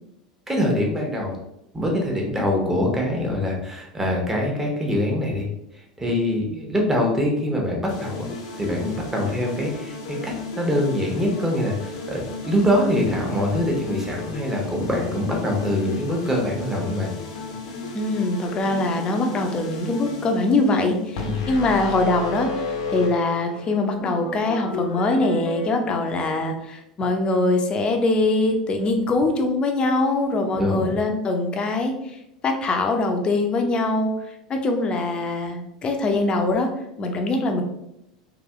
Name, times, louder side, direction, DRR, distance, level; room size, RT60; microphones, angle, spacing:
voice 1, 0.5-1.4 1.7-5.5 6.0-8.3 8.6-17.1 21.2-21.5 30.5-31.0, left 1 dB, 10° right, -1 dB, 1.2 m, -24 dB
sound 1, 7.9-25.7, left 2 dB, 60° left, 0.8 m, -34 dB
voice 2, 17.9-21.2 21.5-34.1 34.5-36.7 37.0-37.6, left 2 dB, 30° left, 4 dB, 0.7 m, -23 dB
4.0 x 2.8 x 3.6 m, 0.83 s
figure-of-eight pair, 80°, 3 cm